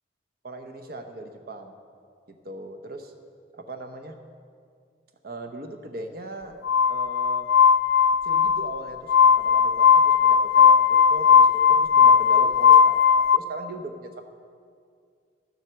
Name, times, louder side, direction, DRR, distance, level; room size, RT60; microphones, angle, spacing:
voice 1, 0.4-1.7 2.3-3.1 3.6-4.2 5.2-6.6 6.9-7.5 8.2-14.2, right 2 dB, 55° right, 5 dB, 0.8 m, -39 dB
Glass, 6.6-13.4, left 7 dB, 70° left, 0.4 m, -17 dB
12.5 x 7.6 x 6.8 m, 2.2 s
head